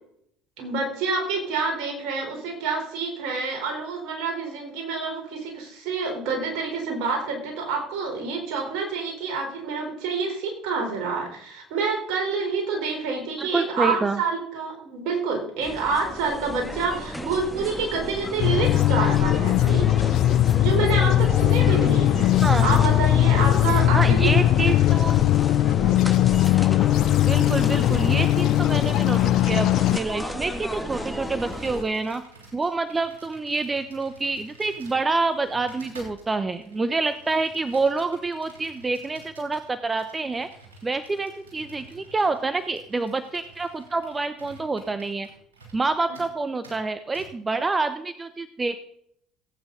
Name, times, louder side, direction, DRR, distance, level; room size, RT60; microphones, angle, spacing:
voice 1, 0.6-19.9 20.6-24.3 24.6-24.7 25.8-26.1, right 4 dB, 60° right, 2 dB, 4.1 m, -28 dB
voice 2, 13.4-14.2 22.4-22.7 23.9-25.2 27.2-32.2 32.5-40.5 40.8-45.3 45.7-48.8, right 3 dB, 20° right, 11 dB, 0.9 m, -27 dB
sound 1, 15.6-31.8, left 1 dB, 5° left, 1.7 m, -34 dB
sound 2, 18.4-30.0, left 13 dB, 55° left, 0.4 m, -19 dB
Computer keyboard, 30.9-45.9 46.1-46.3 46.6-46.8 47.1-47.3, right 3 dB, 85° right, 3.3 m, -50 dB
17.5 x 9.0 x 4.0 m, 0.70 s
hypercardioid pair, 60°, 0 cm